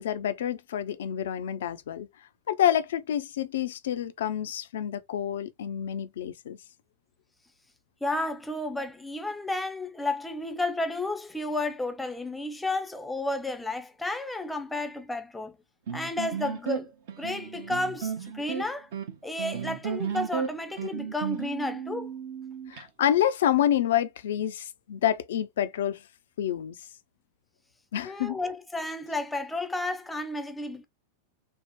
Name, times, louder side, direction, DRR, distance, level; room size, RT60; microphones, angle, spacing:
voice 1, 0.0-2.1 2.5-6.6 22.7-26.0 26.4-26.8 27.9-28.4, left 10 dB, 60° left, 0.4 m, -28 dB
voice 2, 8.0-15.6 15.9-18.9 19.2-22.1 28.0-30.9, left 2 dB, 5° left, 0.5 m, -32 dB
sound 1, 15.9-22.9, right 7 dB, 50° right, 0.7 m, -34 dB
3.5 x 2.0 x 3.0 m
figure-of-eight pair, 90°, 0 cm